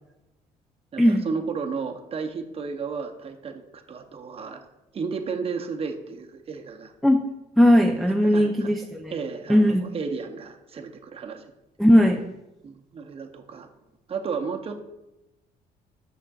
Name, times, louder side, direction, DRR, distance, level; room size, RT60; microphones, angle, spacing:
voice 1, 0.9-4.7 4.9-6.9 8.2-8.7 9.1-11.4 12.6-13.7 14.1-14.8, right 5 dB, 35° right, 6 dB, 0.7 m, -33 dB
voice 2, 7.6-9.1 9.5-9.9 11.8-12.2, equal, ahead, 3 dB, 0.3 m, -18 dB
8.5 x 6.2 x 2.3 m, 0.96 s
cardioid pair, 110°, 17 cm